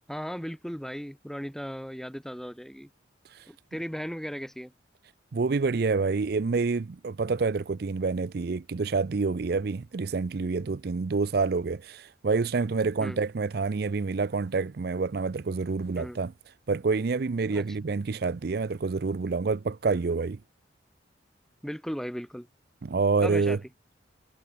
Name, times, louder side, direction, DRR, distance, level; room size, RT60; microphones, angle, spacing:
voice 1, 0.1-2.9 3.5-4.7 13.0-13.2 16.0-16.2 17.5-17.6 21.6-22.5 23.2-23.6, equal, ahead, 2.1 m, -36 dB
voice 2, 5.3-16.3 16.7-20.4 22.8-23.6, right 4 dB, 55° right, 0.5 m, -27 dB
head